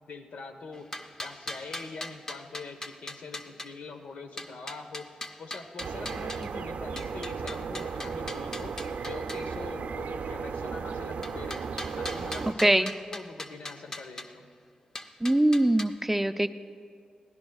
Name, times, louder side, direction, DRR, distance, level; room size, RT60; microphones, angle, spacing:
voice 1, 0.1-0.9 1.2-5.1 5.4-8.7 9.0-11.7 12.0-14.5, left 4 dB, 80° left, 6 dB, 1.0 m, -43 dB
sound 1, 0.7-3.7 4.4-6.5 7.0-9.4 11.2-14.3 14.9-15.8, left 1 dB, 25° left, 0.7 m, -40 dB
sound 2, 5.8-12.5, right 5 dB, 80° right, 0.5 m, -35 dB
voice 2, 12.4-12.9 15.2-16.5, right 1 dB, 10° right, 10 dB, 0.4 m, -23 dB
22.0 x 16.5 x 2.3 m, 2.2 s
wide cardioid pair, 100°, 2 cm